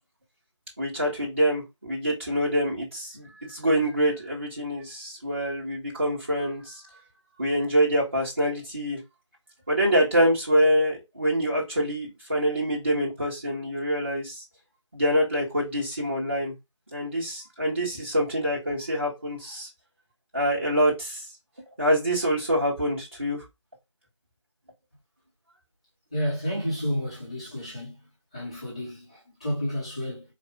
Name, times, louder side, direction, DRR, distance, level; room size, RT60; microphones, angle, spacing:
voice 1, 0.8-6.7 7.4-9.0 9.7-14.3 14.9-16.5 16.9-19.7 20.3-21.2 21.8-23.4, equal, 25° right, 1.5 m, -25 dB
voice 2, 26.1-27.9 28.3-30.2, equal, 10° left, 1.0 m, -31 dB
4.7 x 2.4 x 3.5 m
figure-of-eight pair, 170°, 16 cm